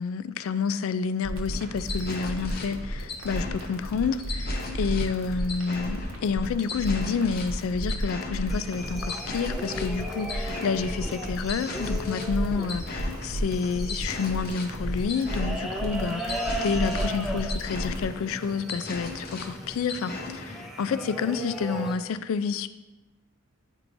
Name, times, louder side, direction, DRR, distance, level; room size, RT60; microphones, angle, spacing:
voice 1, 0.0-22.7, left 5 dB, 70° left, 0.3 m, -29 dB
sound 1, 1.2-18.1, right 1 dB, 65° right, 0.9 m, -33 dB
sound 2, 1.5-20.7, left 3 dB, 45° left, 0.7 m, -39 dB
sound 3, 8.5-22.0, right 1 dB, ahead, 0.4 m, -37 dB
9.5 x 4.5 x 2.6 m
head